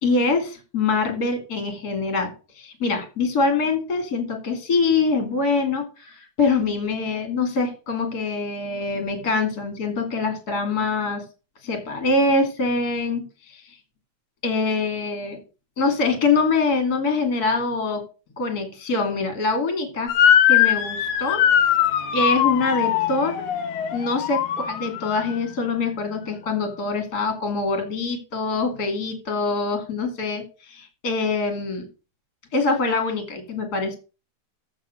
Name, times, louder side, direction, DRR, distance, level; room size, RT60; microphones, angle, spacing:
voice 1, 0.0-11.2 11.6-13.6 14.4-15.4 15.8-18.0 18.4-20.1 20.5-21.4 22.1-23.4 23.9-31.9 32.5-33.9, left 3 dB, 30° left, 6 dB, 2.5 m, -24 dB
Motor vehicle (road) / Siren, 20.1-25.3, left 10 dB, 65° left, 2.2 m, -21 dB
14.0 x 5.0 x 6.4 m, 0.33 s
omnidirectional pair, 4.3 m